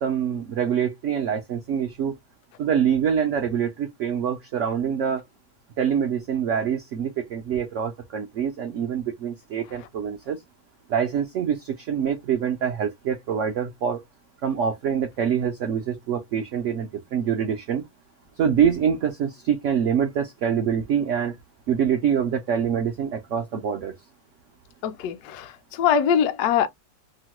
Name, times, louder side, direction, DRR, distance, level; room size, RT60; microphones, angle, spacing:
voice 1, 0.0-2.1 2.6-5.2 5.8-10.4 10.9-14.0 14.4-17.8 18.4-21.3 21.7-23.9, right 8 dB, 75° right, 0.7 m, -25 dB
voice 2, 24.8-26.7, left 8 dB, 70° left, 1.0 m, -23 dB
3.0 x 2.1 x 2.9 m
omnidirectional pair, 1.9 m